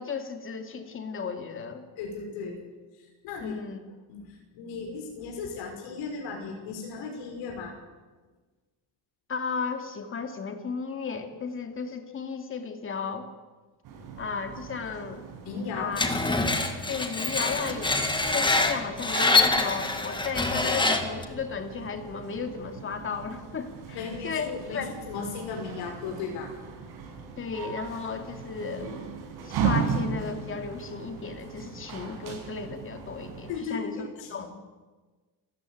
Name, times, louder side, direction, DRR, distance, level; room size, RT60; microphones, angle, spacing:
voice 1, 0.0-1.8 3.4-3.8 9.3-13.3 14.2-15.2 15.7-16.0 16.8-24.9 27.4-29.0 29.4-34.5, left 5 dB, 30° left, 6 dB, 2.6 m, -34 dB
voice 2, 2.0-2.6 3.2-3.6 4.1-7.7 15.5-15.9 23.9-26.5 33.5-34.3, left 5 dB, 85° left, 1 dB, 6.0 m, -36 dB
sound 1, 13.8-33.6, right 6 dB, 60° right, 6.4 m, -37 dB
Screech, 16.0-21.2, left 3 dB, 10° left, 1.9 m, -25 dB
29.5 x 14.0 x 9.5 m, 1.3 s
cardioid pair, 160°, 42 cm